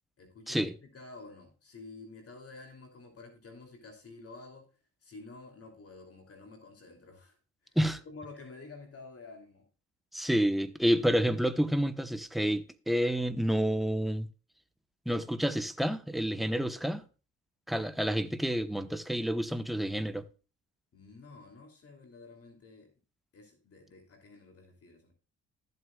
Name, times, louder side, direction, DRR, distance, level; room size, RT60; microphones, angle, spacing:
voice 1, 0.2-4.7 5.0-7.4 7.6-7.8 8.0-9.7 20.9-22.9 23.3-25.1, left 3 dB, 50° left, 3.0 m, -50 dB
voice 2, 10.1-14.3 15.1-17.0 17.7-20.2, equal, ahead, 1.0 m, -29 dB
14.0 x 8.1 x 2.4 m
cardioid pair, 90°, 30 cm